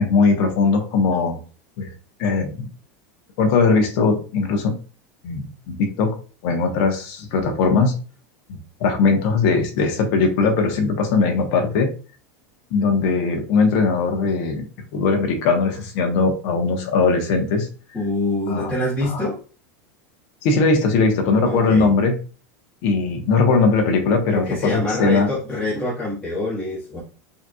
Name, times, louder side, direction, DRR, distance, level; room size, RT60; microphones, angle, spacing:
voice 1, 0.0-1.4 1.8-1.9 2.2-2.7 3.4-4.7 5.2-6.2 6.4-7.9 8.5-11.9 12.7-14.6 14.9-17.7 18.5-18.7 20.4-22.1 22.8-25.3, left 4 dB, 50° left, 3 dB, 1.1 m, -19 dB
voice 2, 17.9-19.4 21.4-21.9 24.3-27.0, left 1 dB, 15° left, -8 dB, 1.4 m, -25 dB
5.5 x 2.9 x 2.3 m, 0.36 s
supercardioid pair, 150°, 9 cm